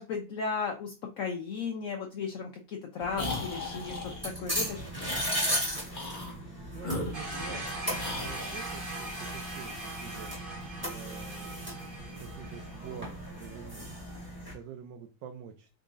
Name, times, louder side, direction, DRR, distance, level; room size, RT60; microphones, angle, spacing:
voice 1, 0.0-4.9, left 5 dB, 70° left, 2 dB, 0.7 m, -35 dB
sound 1, 3.0-14.5, equal, 5° right, 1.5 m, -37 dB
sound 2, 3.1-4.3 5.0-5.2 5.9-6.4 6.8-7.7 8.0-8.6, left 2 dB, 30° left, 1.1 m, -37 dB
voice 2, 6.6-11.8 12.2-14.0 14.2-15.7, right 9 dB, 75° right, 5 dB, 1.2 m, -47 dB
sound 3, 7.1-13.0, right 2 dB, 40° right, 0.8 m, -41 dB
3.8 x 3.6 x 2.5 m, 0.33 s
omnidirectional pair, 2.0 m